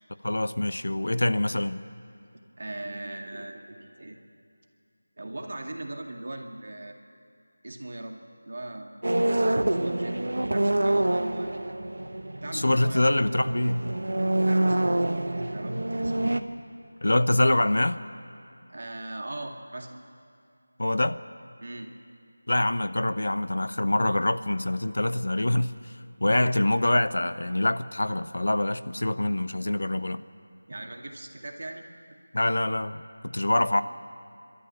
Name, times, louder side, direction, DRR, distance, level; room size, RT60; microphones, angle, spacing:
voice 1, 0.2-1.8 12.5-13.8 17.0-18.0 20.8-21.2 22.5-25.9 26.2-30.2 32.3-33.8, left 1 dB, 75° left, 13 dB, 0.8 m, -25 dB
voice 2, 2.6-4.2 5.2-7.0 7.6-9.0 9.6-11.6 12.4-13.2 14.4-16.5 18.7-19.9 21.6-21.9 30.7-31.8, right 2 dB, 50° right, 3 dB, 2.1 m, -39 dB
sound 1, 9.0-16.4, right 1 dB, 75° right, 1.2 m, -26 dB
27.0 x 13.0 x 8.4 m, 2.4 s
figure-of-eight pair, 175°, 0 cm